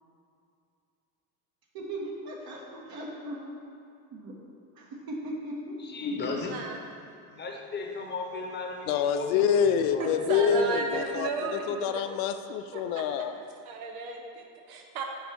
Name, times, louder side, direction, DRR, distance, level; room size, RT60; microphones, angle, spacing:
voice 1, 1.7-3.4 4.1-4.3 4.7-5.8, right 1 dB, 55° right, -2 dB, 1.3 m, -38 dB
voice 2, 5.8-6.6 7.3-10.3 10.8-11.0, left 3 dB, 25° left, 1 dB, 1.0 m, -36 dB
voice 3, 6.5-6.8 10.0-11.9 12.7-13.0 13.7-15.0, right 4 dB, 85° right, 2 dB, 1.0 m, -34 dB
voice 4, 8.9-13.4, left 7 dB, 80° left, 9 dB, 0.6 m, -27 dB
5.5 x 3.9 x 6.0 m, 2.5 s
supercardioid pair, 100°, 42 cm